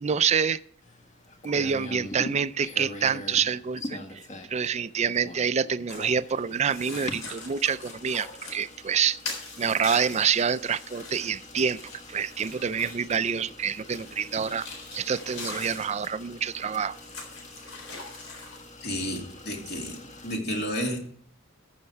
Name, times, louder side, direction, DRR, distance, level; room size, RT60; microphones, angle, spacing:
voice 1, 0.0-0.6 1.4-9.2 9.6-11.8 12.1-17.0, right 7 dB, 35° right, 15 dB, 0.4 m, -27 dB
sound 1, 0.8-20.4, left 1 dB, 35° left, 1.5 m, -44 dB
sound 2, 5.9-6.2 6.7-8.6 9.2-13.1 13.9-15.9 16.9-18.6, left 3 dB, 85° left, 3.9 m, -41 dB
voice 2, 18.8-20.0 20.2-21.0, equal, 55° left, 1 dB, 2.6 m, -31 dB
14.0 x 6.6 x 4.6 m, 0.64 s
head